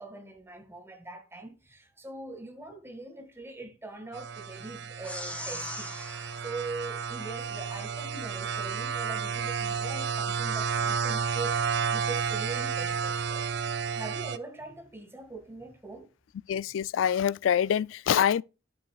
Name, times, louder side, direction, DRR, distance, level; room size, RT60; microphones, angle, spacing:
voice 1, 0.0-13.5 13.9-16.1, right 3 dB, 15° right, 2.0 m, -42 dB
sound 1, 4.1-14.4, right 6 dB, 60° right, 0.6 m, -31 dB
sound 2, 5.0-7.7, left 1 dB, 5° left, 1.1 m, -42 dB
voice 2, 16.5-18.4, left 8 dB, 90° left, 0.3 m, -25 dB
10.5 x 8.1 x 2.3 m
head